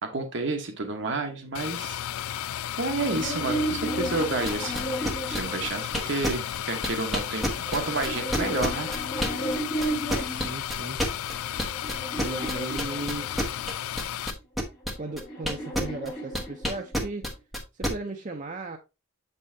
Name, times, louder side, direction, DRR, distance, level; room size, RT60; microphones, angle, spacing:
voice 1, 0.0-2.0 2.8-4.9 5.3-8.9, right 3 dB, 60° right, 1.0 m, -30 dB
sound 1, 1.5-14.3, left 11 dB, 90° left, 0.3 m, -33 dB
sound 2, 2.8-6.2 7.2-10.6 11.2-13.6 14.7-17.1, right 1 dB, 30° left, 3.4 m, -34 dB
sound 3, 4.5-9.6 9.8-16.1 16.3-17.9, equal, ahead, 1.1 m, -28 dB
voice 2, 10.3-11.0 11.9-13.5 15.0-17.3 17.7-18.8, right 2 dB, 35° right, 0.6 m, -36 dB
7.4 x 5.4 x 2.7 m
head